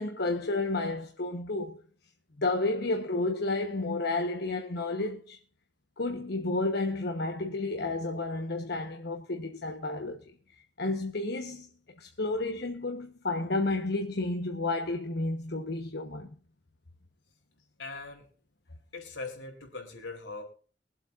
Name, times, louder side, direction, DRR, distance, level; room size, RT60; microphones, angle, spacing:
voice 1, 0.0-1.8 2.4-5.4 6.0-10.2 10.8-11.7 12.0-16.3, left 2 dB, 65° left, 1.2 m, -31 dB
voice 2, 17.8-18.3 18.9-20.4, left 3 dB, 80° left, 4.0 m, -40 dB
23.5 x 8.1 x 2.6 m
head